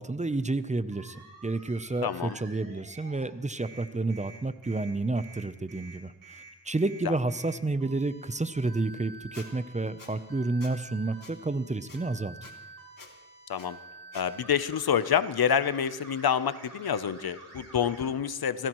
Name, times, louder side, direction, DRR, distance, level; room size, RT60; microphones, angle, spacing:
voice 1, 0.0-12.4, right 2 dB, 20° right, 13 dB, 0.6 m, -30 dB
sound 1, 0.9-3.3 3.6-18.1, right 3 dB, 65° right, 6.2 m, -49 dB
voice 2, 2.0-2.4 7.0-7.1 13.5-13.8 14.1-18.7, left 8 dB, 75° left, 14 dB, 0.8 m, -27 dB
Squeak, 9.3-9.5 10.0-10.1 10.6-10.7 11.2-11.3 11.9-12.0 12.4-12.5 13.0-13.1 13.6-13.7 14.1-14.3, left 4 dB, 60° left, 2.5 m, -48 dB
26.5 x 17.0 x 3.1 m, 1.1 s
wide cardioid pair, 75°, 37 cm